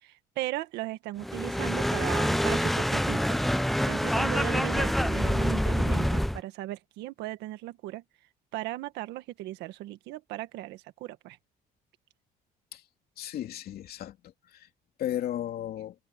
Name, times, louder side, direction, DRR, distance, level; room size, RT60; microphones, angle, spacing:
voice 1, 0.0-3.4 3.9-8.0 8.5-11.4, right 16 dB, 90° right, 1.7 m, -37 dB
sound 1, 1.2-6.4, equal, ahead, 0.4 m, -26 dB
voice 2, 13.2-14.2 14.5-14.7 15.0-15.9, left 11 dB, 65° left, 2.8 m, -34 dB
cardioid pair, 110°, 17 cm